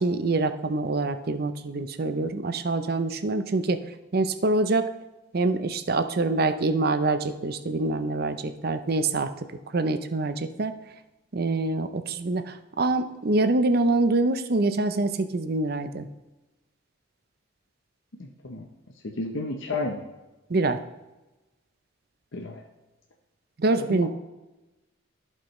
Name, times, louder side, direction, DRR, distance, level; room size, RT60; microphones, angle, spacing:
voice 1, 0.0-3.8 4.1-4.9 5.3-9.3 9.7-10.8 11.3-16.1 20.5-20.8 23.6-24.1, right 2 dB, 50° right, 10 dB, 0.6 m, -25 dB
voice 2, 18.2-18.6 19.0-20.0 22.3-22.6 23.8-24.1, left 2 dB, 70° left, 1 dB, 0.8 m, -32 dB
15.0 x 5.5 x 3.1 m, 1.1 s
head